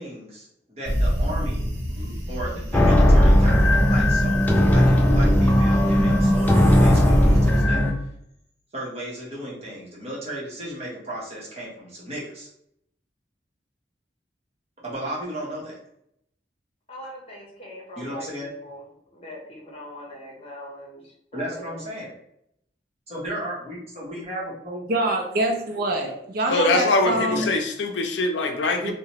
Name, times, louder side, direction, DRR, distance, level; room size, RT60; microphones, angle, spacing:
voice 1, 0.0-7.8 8.7-12.5 14.8-15.8 18.0-18.5 21.3-22.1 23.1-24.8 27.1-27.5, right 1 dB, 35° right, -5 dB, 1.0 m, -35 dB
sound 1, 0.8-7.6, equal, 85° right, 0.8 m, -30 dB
sound 2, 2.7-7.9, equal, 10° left, 0.4 m, -17 dB
voice 2, 16.9-18.8 19.1-21.0 21.3-21.8, equal, 35° left, -2 dB, 0.8 m, -41 dB
voice 3, 24.9-27.5 28.8-28.9, right 1 dB, 55° right, 2 dB, 0.5 m, -25 dB
voice 4, 26.5-28.9, left 2 dB, 80° left, 4 dB, 0.5 m, -23 dB
2.8 x 2.1 x 2.9 m, 0.75 s
head